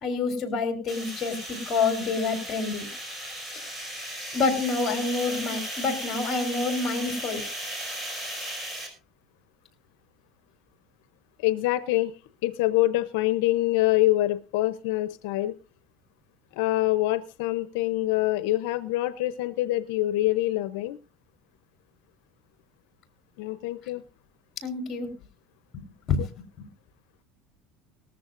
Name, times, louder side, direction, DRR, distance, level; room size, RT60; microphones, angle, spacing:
voice 1, 0.0-2.9 3.5-3.6 4.3-7.4 24.6-25.1 25.7-26.7, left 4 dB, 35° left, 4 dB, 3.9 m, -28 dB
sound 1, 0.9-8.9, right 1 dB, 15° right, 5.5 m, -36 dB
voice 2, 11.4-12.1 12.4-15.5 16.5-21.0 23.4-24.0, left 17 dB, 80° left, 13 dB, 0.7 m, -25 dB
19.5 x 14.0 x 2.5 m, 0.34 s
cardioid pair, 140°, 0 cm